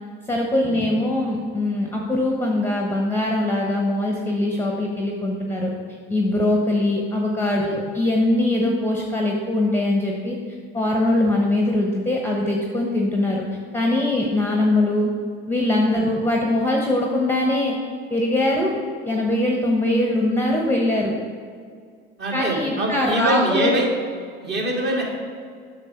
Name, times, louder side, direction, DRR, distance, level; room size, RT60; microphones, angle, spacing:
voice 1, 0.3-5.7 6.1-10.4 10.7-13.4 13.7-15.1 15.5-17.7 18.1-18.7 19.0-21.1 22.3-23.8, left 1 dB, 5° left, -1 dB, 1.1 m, -22 dB
voice 2, 22.2-23.8 24.4-25.0, right 1 dB, 35° right, -2 dB, 2.3 m, -24 dB
8.3 x 6.1 x 4.6 m, 2.1 s
supercardioid pair, 85°, 30 cm